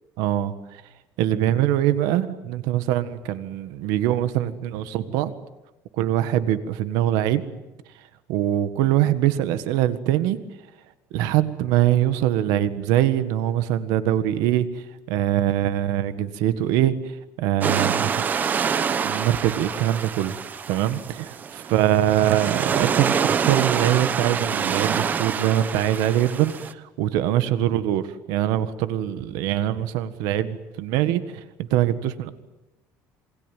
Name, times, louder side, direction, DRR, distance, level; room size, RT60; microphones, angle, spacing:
voice 1, 0.2-0.8 1.2-5.3 5.9-7.4 8.3-10.4 11.1-18.1 19.0-20.4 20.7-28.0 28.3-32.3, right 12 dB, 80° right, 12 dB, 1.6 m, -23 dB
sound 1, 17.6-26.7, right 7 dB, 25° right, 1.0 m, -26 dB
27.5 x 23.0 x 9.2 m, 1.0 s
cardioid pair, 160°, 6 cm